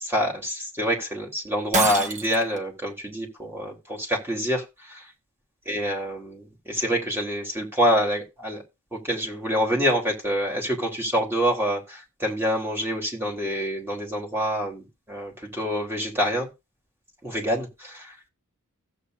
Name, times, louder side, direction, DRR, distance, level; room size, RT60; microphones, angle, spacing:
voice 1, 0.0-5.0 5.7-8.6 8.9-16.5 17.2-18.1, equal, 10° right, -1 dB, 3.8 m, -26 dB
Shatter, 1.7-2.6, right 3 dB, 35° right, 1.4 m, -26 dB
16.0 x 8.2 x 2.8 m, 0.26 s
head